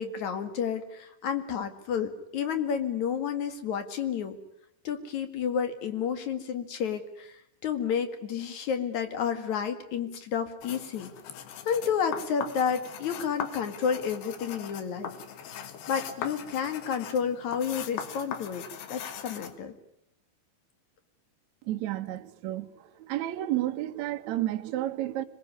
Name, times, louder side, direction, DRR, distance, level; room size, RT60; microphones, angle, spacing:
voice 1, 0.0-4.4 4.8-11.1 11.7-15.1 15.9-18.6 18.9-19.7, left 7 dB, 50° left, 2.8 m, -30 dB
sound 1, 10.6-19.6, left 8 dB, 70° left, 3.5 m, -40 dB
voice 2, 21.6-25.2, right 14 dB, 80° right, 1.6 m, -31 dB
26.0 x 21.0 x 9.8 m
omnidirectional pair, 5.0 m